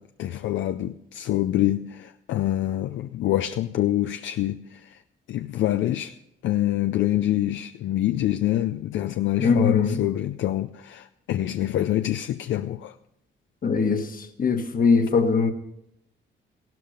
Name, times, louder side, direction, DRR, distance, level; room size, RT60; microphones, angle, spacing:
voice 1, 0.0-5.0 5.3-6.2 6.4-13.0, left 13 dB, 75° left, 0.5 m, -26 dB
voice 2, 9.4-10.0 13.6-15.5, left 5 dB, 45° left, 1.5 m, -21 dB
15.5 x 12.5 x 5.1 m
cardioid pair, 90°, 20 cm